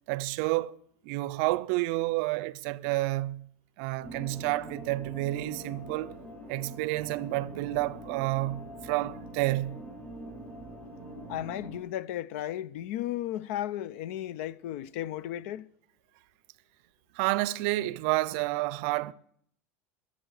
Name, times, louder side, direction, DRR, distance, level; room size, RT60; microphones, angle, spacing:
voice 1, 0.1-0.8 1.0-3.5 3.8-6.2 6.5-9.8 17.1-19.1, right 19 dB, 65° right, 0.6 m, -30 dB
sound 1, 4.0-11.8, right 1 dB, 15° left, 6.7 m, -44 dB
voice 2, 11.3-15.7, left 12 dB, 75° left, 0.6 m, -34 dB
22.0 x 7.5 x 6.5 m
supercardioid pair, 150°, 7 cm